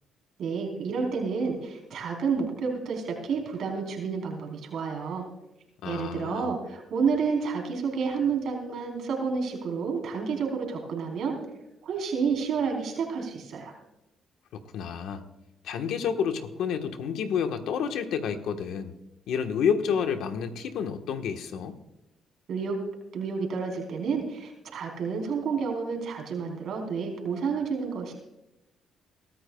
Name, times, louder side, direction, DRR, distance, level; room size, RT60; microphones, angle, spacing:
voice 1, 0.4-5.3 5.8-11.4 11.8-13.7 22.5-22.8 23.1-28.1, right 5 dB, 70° right, 2 dB, 3.8 m, -30 dB
voice 2, 5.8-6.5 14.5-15.2 15.6-18.9 19.3-21.8, left 7 dB, 85° left, 6 dB, 1.2 m, -29 dB
22.5 x 13.5 x 2.3 m, 0.93 s
cardioid pair, 90°, 0 cm